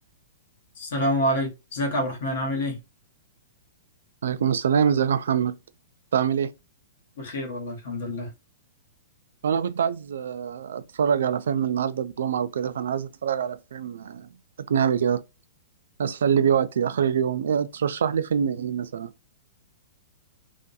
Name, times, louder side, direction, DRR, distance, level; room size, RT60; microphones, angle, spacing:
voice 1, 0.8-2.8 7.2-8.3, equal, 60° left, 1.2 m, -27 dB
voice 2, 4.2-5.6 6.1-6.5 9.4-14.3 14.7-15.2 16.0-19.1, right 8 dB, 80° right, 0.3 m, -24 dB
2.4 x 2.2 x 2.5 m
hypercardioid pair, 170°, 0 cm